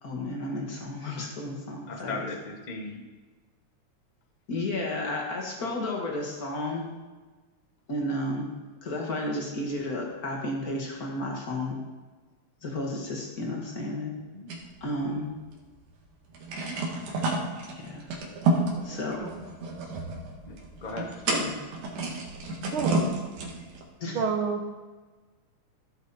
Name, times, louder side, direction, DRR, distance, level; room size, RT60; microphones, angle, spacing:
voice 1, 0.0-2.3 4.5-6.9 7.9-8.5 8.8-11.8 12.6-14.1 14.8-15.3 17.7-18.1 18.8-19.3 21.3-21.6 24.0-24.2, left 1 dB, 35° left, -1 dB, 2.0 m, -32 dB
voice 2, 1.9-3.0 14.3-14.5 20.5-21.1, left 3 dB, 85° left, 2 dB, 0.4 m, -37 dB
sound 1, 14.5-15.7 16.0-16.1 16.3-23.8, right 2 dB, 80° right, 3.1 m, -30 dB
voice 3, 18.5-19.3 22.7-23.1 24.1-24.7, right 5 dB, 60° right, 3 dB, 1.4 m, -31 dB
15.5 x 7.3 x 4.3 m, 1.3 s
omnidirectional pair, 3.3 m